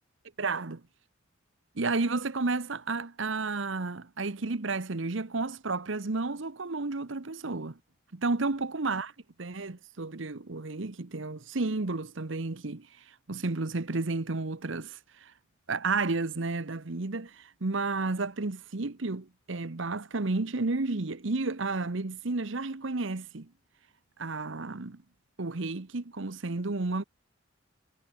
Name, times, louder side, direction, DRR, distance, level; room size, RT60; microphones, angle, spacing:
voice 1, 0.4-0.8 1.7-7.8 8.1-9.1 9.4-12.9 13.3-15.3 15.7-23.5 24.2-25.0 25.4-27.0, right 3 dB, 65° right, 1.1 m, -32 dB
head